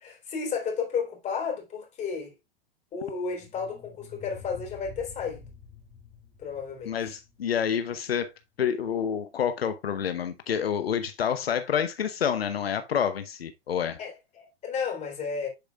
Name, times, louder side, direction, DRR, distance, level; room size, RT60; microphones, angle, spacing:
voice 1, 0.0-2.3 2.9-5.5 6.4-7.1 14.0-15.5, left 5 dB, 25° left, 3.5 m, -33 dB
sound 1, 3.1-8.2, left 5 dB, 10° right, 3.2 m, -49 dB
voice 2, 6.9-8.3 8.6-14.0, left 8 dB, 80° left, 0.8 m, -28 dB
10.5 x 4.9 x 2.3 m
hypercardioid pair, 110°, 30 cm